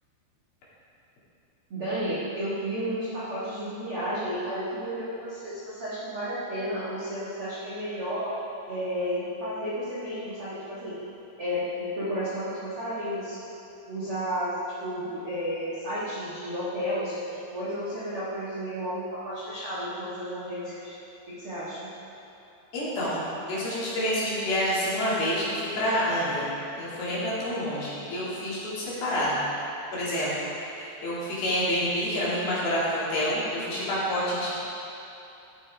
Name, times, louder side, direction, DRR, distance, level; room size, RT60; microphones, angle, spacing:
voice 1, 1.7-8.3 8.6-11.0 11.4-13.4 13.8-20.9 21.3-21.9, equal, 70° right, -10 dB, 1.3 m, -32 dB
voice 2, 22.7-25.5 25.8-26.5 26.8-29.5 29.9-30.5 30.7-34.6, equal, 55° left, -9 dB, 3.9 m, -28 dB
14.0 x 8.9 x 3.5 m, 2.9 s
omnidirectional pair, 5.5 m